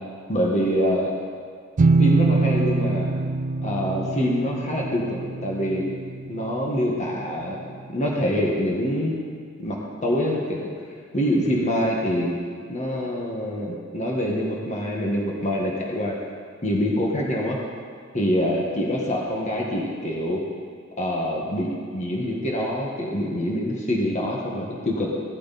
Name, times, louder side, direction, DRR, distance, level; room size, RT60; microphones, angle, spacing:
voice 1, 0.3-1.1 2.0-3.1 3.6-5.9 6.3-7.6 7.9-9.1 9.6-10.7 11.1-12.4 12.7-16.2 16.6-17.6 18.1-20.4 21.0-25.1, equal, 35° left, -2 dB, 1.8 m, -25 dB
sound 1, 1.8-7.4, right 3 dB, 35° right, 0.4 m, -24 dB
17.0 x 13.0 x 4.3 m, 2.1 s
head